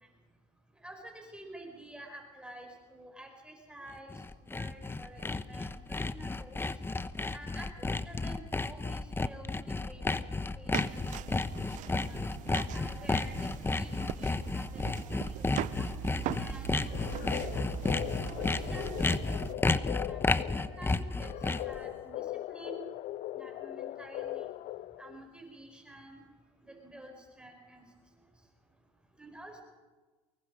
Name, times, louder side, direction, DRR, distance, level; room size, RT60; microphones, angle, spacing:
voice 1, 0.8-4.2 4.5-6.6 7.3-10.2 10.6-12.3 12.7-15.9 16.4-17.6 18.4-21.3 21.6-22.9 23.3-24.5 25.0-26.2 26.6-27.8 29.2-29.6, right 1 dB, 5° right, 2 dB, 5.2 m, -50 dB
Sawing, 3.9-21.8, left 3 dB, 15° left, 1.0 m, -32 dB
sound 1, 10.7-19.5, right 15 dB, 60° right, 0.7 m, -41 dB
sound 2, 16.8-25.3, left 15 dB, 55° left, 0.6 m, -40 dB
24.0 x 20.5 x 5.2 m, 1.3 s
hypercardioid pair, 75°, 15 cm